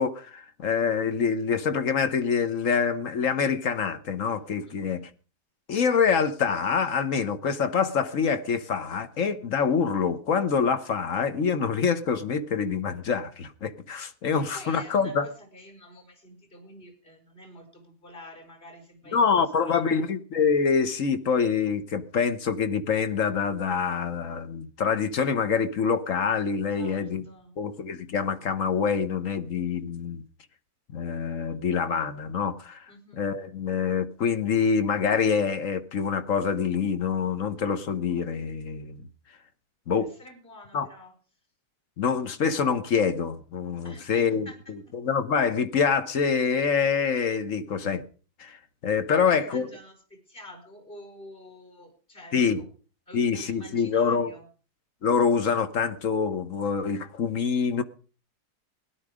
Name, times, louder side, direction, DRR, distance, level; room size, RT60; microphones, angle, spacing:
voice 1, 0.0-5.0 5.7-15.3 19.1-27.2 27.6-30.2 30.9-32.8 33.1-39.1 39.9-40.1 40.7-40.9 42.0-44.5 44.9-48.0 48.4-48.6 48.8-49.7 52.3-52.6 53.1-54.3 55.0-57.8, left 6 dB, 55° left, 1.4 m, -25 dB
voice 2, 4.7-5.0 14.3-19.3 19.6-20.0 26.7-27.5 32.9-33.2 39.9-41.1 43.8-44.6 49.1-50.0 50.3-52.7 53.1-54.5, left 1 dB, 30° left, 5.3 m, -47 dB
17.5 x 11.5 x 5.0 m
omnidirectional pair, 1.7 m